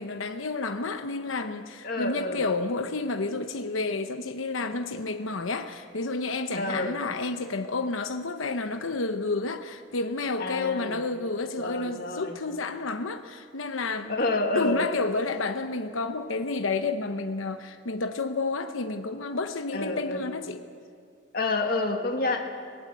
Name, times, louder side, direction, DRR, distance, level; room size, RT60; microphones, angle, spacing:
voice 1, 0.0-14.1 14.5-20.6, left 3 dB, 85° left, 1.0 m, -30 dB
voice 2, 1.8-2.4 6.5-7.0 10.4-11.0 11.6-12.4 14.1-14.8 19.7-20.3 21.3-22.5, left 2 dB, 50° left, 1.9 m, -28 dB
22.0 x 19.0 x 8.2 m
head